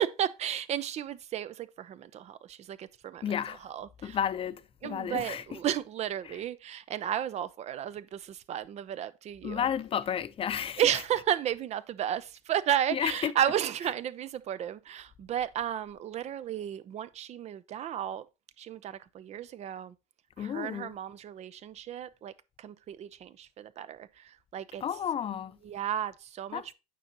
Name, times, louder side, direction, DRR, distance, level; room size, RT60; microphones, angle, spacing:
voice 1, 0.0-4.2 4.8-9.7 10.8-18.3 18.6-19.9 20.4-22.3 22.6-24.8 25.6-26.7, right 10 dB, 35° right, 0.5 m, -33 dB
voice 2, 3.2-3.6 4.0-5.4 9.4-10.8 12.9-13.3 20.4-20.9 24.8-25.6 26.5-26.7, left 8 dB, 30° left, 0.6 m, -32 dB
9.2 x 5.2 x 2.9 m
hypercardioid pair, 90°, 18 cm